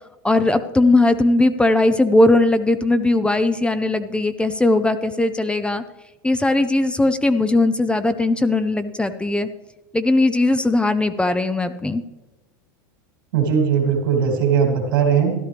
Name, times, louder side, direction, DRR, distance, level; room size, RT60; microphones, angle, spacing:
voice 1, 0.2-5.8 6.2-9.5 9.9-12.0, left 2 dB, 10° left, 11 dB, 0.6 m, -18 dB
voice 2, 13.3-15.3, right 7 dB, 80° right, 2 dB, 2.8 m, -19 dB
13.0 x 11.5 x 3.4 m, 1.1 s
hypercardioid pair, 100°, 11 cm